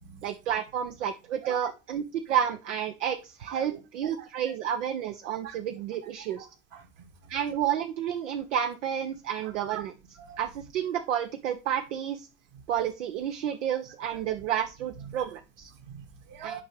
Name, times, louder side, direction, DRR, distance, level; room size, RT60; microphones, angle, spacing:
voice 1, 0.2-6.5 7.3-9.9 10.4-12.3 12.7-15.7 16.4-16.6, right 9 dB, 85° right, 7 dB, 0.6 m, -30 dB
voice 2, 3.5-4.3 5.4-5.6 6.4-6.9 7.2-7.3 9.4-9.8 10.2-10.4 12.5-12.6 15.0-15.3 15.7-16.6, right 8 dB, 65° right, 4 dB, 1.9 m, -44 dB
8.5 x 5.3 x 3.2 m, 0.30 s
hypercardioid pair, 55°, 36 cm